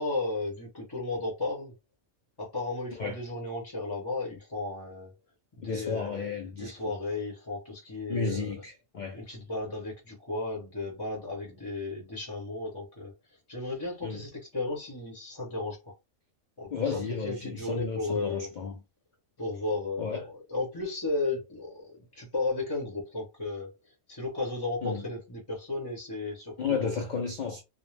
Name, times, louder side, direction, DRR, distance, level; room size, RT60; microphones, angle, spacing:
voice 1, 0.0-1.7 2.4-5.1 5.6-8.5 9.1-13.1 13.5-15.9 16.6-18.5 19.4-23.7 24.1-27.0, left 2 dB, 25° left, 0.6 m, -34 dB
voice 2, 5.6-6.9 8.1-9.2 14.0-14.2 16.7-18.7 20.0-20.2 24.8-25.0 26.6-27.6, left 5 dB, 85° left, 0.4 m, -33 dB
2.3 x 2.0 x 3.1 m
omnidirectional pair, 1.4 m